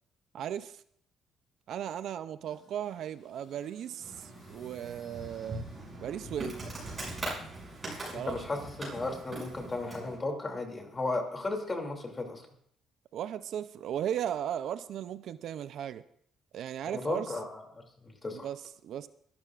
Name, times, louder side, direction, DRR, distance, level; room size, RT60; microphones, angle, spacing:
voice 1, 0.3-0.8 1.7-5.7 6.0-6.7 8.1-8.4 13.1-16.0 16.5-17.4 18.3-19.1, right 10 dB, 60° right, 0.4 m, -36 dB
sound 1, 2.4-6.8, left 3 dB, 45° left, 6.4 m, -57 dB
Insect, 4.0-10.2, right 2 dB, 25° right, 6.3 m, -41 dB
voice 2, 8.1-12.4 16.9-18.5, left 2 dB, 20° left, 2.6 m, -35 dB
23.5 x 12.5 x 2.4 m
cardioid pair, 130°, 0 cm